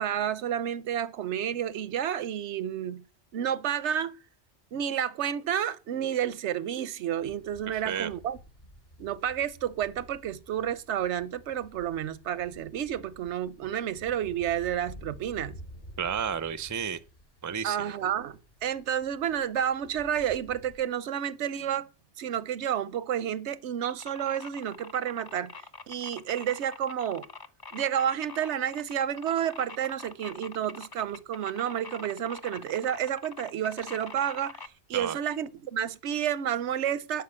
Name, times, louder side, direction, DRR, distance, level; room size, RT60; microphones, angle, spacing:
voice 1, 0.0-3.0 3.3-4.2 4.7-8.4 9.0-15.6 17.6-21.9 22.2-25.5 25.9-27.3 27.7-34.6 34.9-37.2, right 9 dB, 85° right, 1.0 m, -30 dB
sound 1, 7.1-20.8, equal, 60° left, 4.6 m, -51 dB
voice 2, 7.7-8.1 16.0-17.0 17.4-17.9 34.9-35.2, right 7 dB, 25° right, 0.5 m, -32 dB
sound 2, 23.8-34.7, left 4 dB, 30° left, 0.4 m, -44 dB
11.5 x 5.2 x 8.7 m
omnidirectional pair, 1.1 m